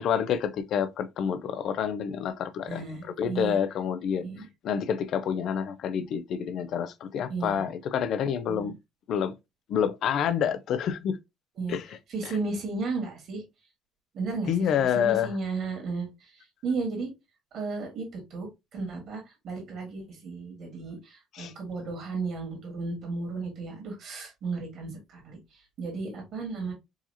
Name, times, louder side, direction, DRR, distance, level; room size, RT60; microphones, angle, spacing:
voice 1, 0.0-4.3 4.6-8.7 9.1-9.3 9.7-11.2 11.7-12.0 12.2-12.3 14.5-15.3 21.3-21.5, left 8 dB, 45° left, 0.4 m, -28 dB
voice 2, 2.7-3.6 4.2-4.5 7.3-7.6 8.5-8.7 11.5-11.8 12.1-13.4 14.1-14.5 14.9-17.1 17.5-26.7, right 3 dB, 45° right, 1.7 m, -34 dB
4.7 x 2.9 x 2.7 m
cardioid pair, 180°, 0 cm